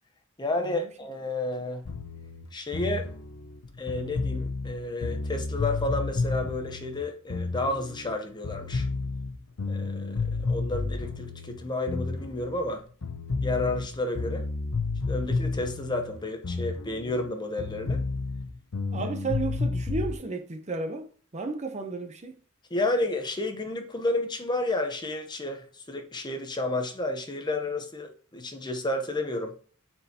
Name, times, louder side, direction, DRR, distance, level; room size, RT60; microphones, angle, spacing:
voice 1, 0.4-1.8 2.5-3.1 3.8-8.9 9.6-12.8 13.4-14.4 15.0-18.0 18.9-19.1 22.7-29.6, left 2 dB, 20° left, 0.8 m, -31 dB
sound 1, 1.9-8.2 8.4-12.7 13.0-17.3 17.6-20.1, left 3 dB, 75° left, 0.7 m, -31 dB
voice 2, 18.9-21.1 21.3-22.4, right 3 dB, 30° right, 0.7 m, -33 dB
9.9 x 4.5 x 2.8 m
head